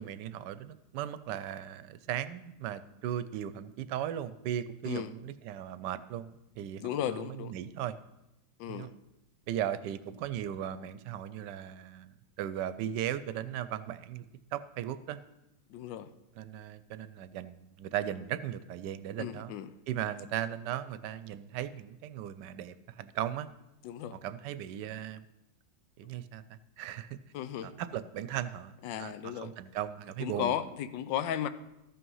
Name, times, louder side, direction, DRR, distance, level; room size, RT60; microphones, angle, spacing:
voice 1, 0.0-8.0 8.7-8.9 9.5-14.3 14.5-15.2 16.4-19.5 19.9-23.5 24.2-25.2 26.0-27.2 27.6-30.5, right 11 dB, 75° right, 14 dB, 1.1 m, -37 dB
voice 2, 6.8-7.5 8.6-8.9 15.7-16.1 19.2-19.7 23.8-24.2 27.3-27.8 28.8-29.5 30.2-31.5, left 10 dB, 85° left, 12 dB, 1.4 m, -35 dB
13.5 x 5.7 x 5.5 m, 0.92 s
omnidirectional pair, 2.0 m